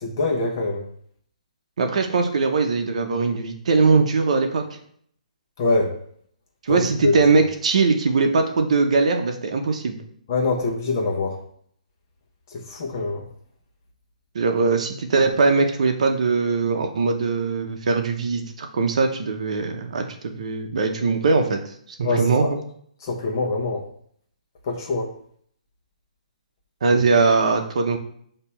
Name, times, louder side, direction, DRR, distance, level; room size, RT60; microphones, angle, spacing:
voice 1, 0.0-0.8 5.6-5.9 6.7-7.2 10.3-11.4 12.5-13.2 22.0-22.5 23.0-23.9 24.7-25.1, left 3 dB, 30° left, 0 dB, 1.1 m, -24 dB
voice 2, 1.8-4.6 6.6-10.0 14.3-21.6 22.0-22.6 26.8-28.0, right 4 dB, 55° right, 5 dB, 0.9 m, -21 dB
6.6 x 2.9 x 5.7 m, 0.64 s
hypercardioid pair, 175°, 4 cm